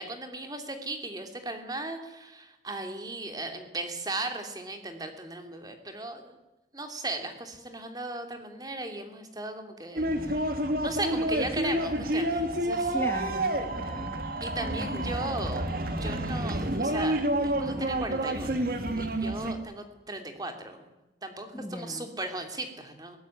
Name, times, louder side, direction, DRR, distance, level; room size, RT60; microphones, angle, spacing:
voice 1, 0.0-6.4 6.7-10.5 10.8-12.9 14.4-21.0 21.2-23.2, right 2 dB, 20° right, 6 dB, 2.9 m, -37 dB
sound 1, 10.0-19.5, right 1 dB, 50° right, 2.2 m, -29 dB
voice 2, 12.9-14.2 14.6-15.1 21.5-22.1, left 1 dB, 15° left, 6 dB, 1.2 m, -37 dB
21.5 x 17.5 x 9.8 m, 1.0 s
head